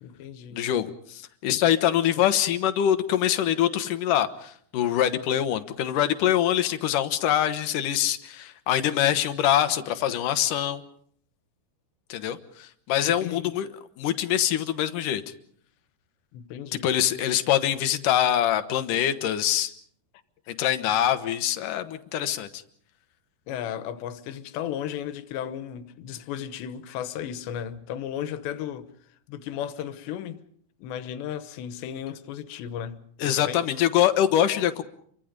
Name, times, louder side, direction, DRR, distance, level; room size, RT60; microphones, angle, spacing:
voice 1, 0.0-0.7 13.0-13.5 16.3-16.9 23.5-28.9 29.3-30.4 30.8-33.6, left 10 dB, 85° left, 3.4 m, -35 dB
voice 2, 0.5-10.8 12.1-13.7 14.0-15.2 16.8-19.7 20.5-22.6 33.2-34.8, left 11 dB, 65° left, 2.3 m, -24 dB
29.5 x 24.0 x 5.3 m
omnidirectional pair, 4.9 m